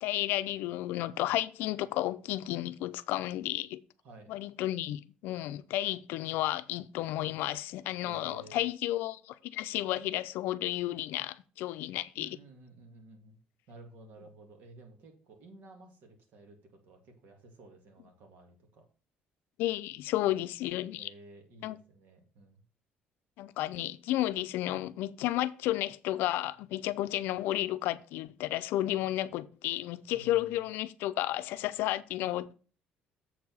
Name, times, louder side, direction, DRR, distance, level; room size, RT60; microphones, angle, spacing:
voice 1, 0.0-3.8 4.3-12.4 19.6-21.1 21.6-21.8 23.4-32.5, left 15 dB, 80° left, 0.5 m, -32 dB
voice 2, 4.0-4.4 8.0-8.6 12.2-13.4 13.7-18.9 21.0-22.6 30.1-30.6, right 2 dB, 60° right, 2.1 m, -53 dB
7.2 x 4.8 x 5.5 m
cardioid pair, 150°, 3 cm